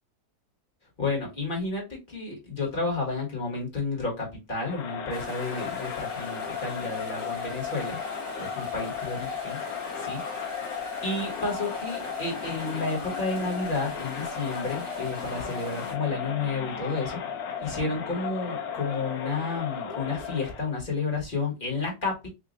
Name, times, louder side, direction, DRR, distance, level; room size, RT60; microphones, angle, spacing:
voice 1, 1.0-8.0 8.4-9.6 10.0-10.2 10.7-17.2 17.6-22.3, left 3 dB, 30° left, 1.6 m, -31 dB
Crowd, 4.6-20.7, left 6 dB, 65° left, 1.1 m, -35 dB
sound 1, 5.1-15.9, right 3 dB, 65° right, 2.4 m, -46 dB
5.1 x 2.7 x 2.5 m
omnidirectional pair, 1.8 m